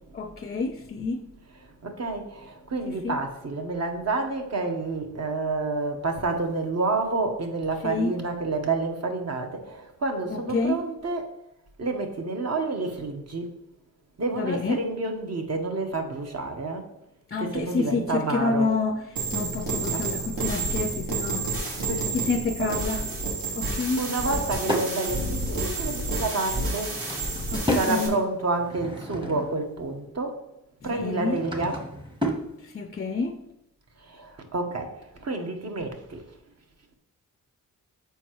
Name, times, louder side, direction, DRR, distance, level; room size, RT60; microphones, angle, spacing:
voice 1, 0.1-1.2 2.9-3.2 7.8-8.1 10.3-10.8 14.4-14.8 17.3-19.0 19.3-21.5 22.1-23.0 23.6-24.0 27.5-28.2 30.8-31.4 32.6-33.4, left 4 dB, 30° left, 6 dB, 0.5 m, -28 dB
voice 2, 1.8-11.3 11.8-13.5 14.2-16.9 17.4-18.7 19.9-20.0 21.6-22.2 22.6-23.0 24.0-26.9 27.8-30.4 30.8-31.9 34.0-36.2, right 3 dB, 45° right, 4 dB, 1.1 m, -29 dB
sound 1, 19.2-28.1, right 2 dB, 70° right, 1.7 m, -30 dB
Drawer open or close / Wood, 24.0-24.9 26.6-28.0 28.5-29.7 31.0-32.5, equal, 15° right, 1.0 m, -32 dB
6.9 x 4.6 x 3.0 m, 0.85 s
cardioid pair, 70°, 35 cm